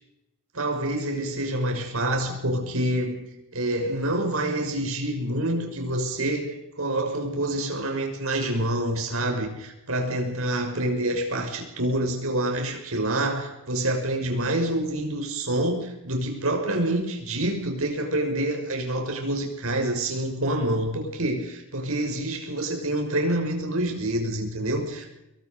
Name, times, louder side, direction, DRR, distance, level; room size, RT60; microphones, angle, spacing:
voice 1, 0.5-25.1, right 1 dB, 75° right, 3 dB, 6.2 m, -27 dB
26.0 x 22.5 x 5.5 m, 0.89 s
head